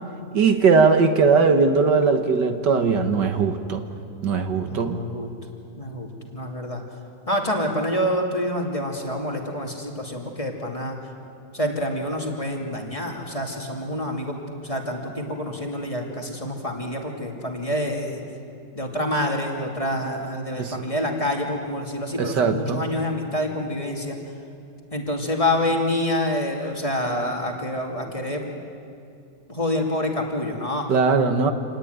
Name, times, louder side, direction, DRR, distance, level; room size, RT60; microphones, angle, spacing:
voice 1, 0.3-3.8 4.2-5.0 20.6-20.8 22.2-22.8 30.9-31.5, right 4 dB, 70° right, 7 dB, 2.0 m, -19 dB
voice 2, 4.6-5.3 5.8-6.8 7.3-11.0 11.5-18.2 18.7-24.2 24.9-28.5 29.5-30.9, left 1 dB, 20° left, 1 dB, 2.6 m, -27 dB
27.5 x 19.5 x 9.5 m, 2.4 s
omnidirectional pair, 1.9 m